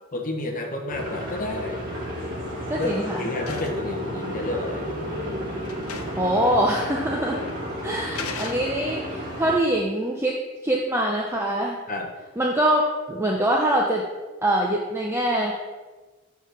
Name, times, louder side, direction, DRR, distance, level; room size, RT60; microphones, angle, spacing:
voice 1, 0.1-1.8 2.8-2.9 3.2-4.8 11.9-12.1, left 2 dB, 35° left, 3 dB, 0.9 m, -30 dB
sound 1, 0.9-9.6, equal, 40° right, 1.7 m, -32 dB
sound 2, 1.9-2.2 2.6-3.9 4.9-5.0 5.3-5.4 5.6-6.3 6.6-6.7 7.5-7.6 8.1-9.1, left 4 dB, 75° left, 0.8 m, -37 dB
voice 2, 2.7-3.3 6.2-7.4 7.8-11.8 12.4-12.8 13.1-14.1 14.4-15.6, right 1 dB, 10° right, -2 dB, 0.5 m, -24 dB
7.2 x 4.1 x 6.2 m, 1.3 s
head